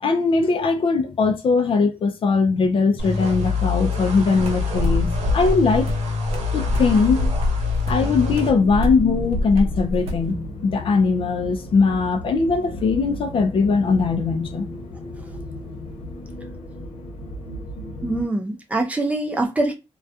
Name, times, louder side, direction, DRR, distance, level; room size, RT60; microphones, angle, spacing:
voice 1, 0.0-5.9 6.5-7.3 7.9-14.7, left 4 dB, 50° left, 0.4 m, -20 dB
sound 1, 3.0-8.5, left 5 dB, 90° right, 0.9 m, -25 dB
sound 2, 4.4-10.3, left 1 dB, 65° right, 0.7 m, -26 dB
sound 3, 8.0-18.3, left 1 dB, 70° left, 0.8 m, -35 dB
voice 2, 18.0-19.7, right 2 dB, 10° right, 0.5 m, -23 dB
2.3 x 2.3 x 2.6 m
wide cardioid pair, 140°, 11 cm